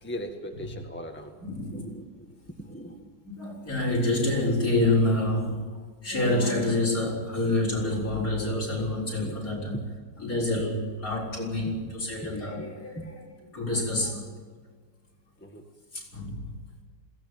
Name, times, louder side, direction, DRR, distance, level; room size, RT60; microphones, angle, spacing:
voice 1, 0.0-1.3 1.7-3.1 9.2-9.4 11.7-11.8 12.2-12.3 13.0-13.1 15.4-15.6, equal, 5° left, 2 dB, 1.7 m, -40 dB
voice 2, 1.4-1.9 3.2-5.6 6.0-9.8 10.2-14.3 15.9-16.5, left 2 dB, 50° left, -2 dB, 6.8 m, -27 dB
21.5 x 17.5 x 9.0 m, 1.5 s
omnidirectional pair, 1.9 m